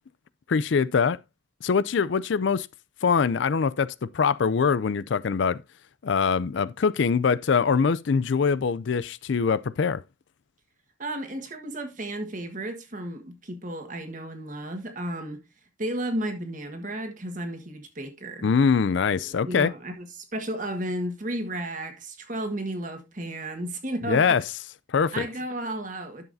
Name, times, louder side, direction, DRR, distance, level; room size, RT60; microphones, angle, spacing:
voice 1, 0.5-1.2 1.6-2.7 3.0-5.6 6.0-10.0 18.4-19.7 24.1-24.4 24.9-25.3, left 5 dB, 65° left, 0.4 m, -23 dB
voice 2, 11.0-15.4 15.8-18.5 19.2-24.4 25.1-26.2, right 1 dB, 40° right, 1.6 m, -33 dB
11.0 x 7.1 x 2.6 m
head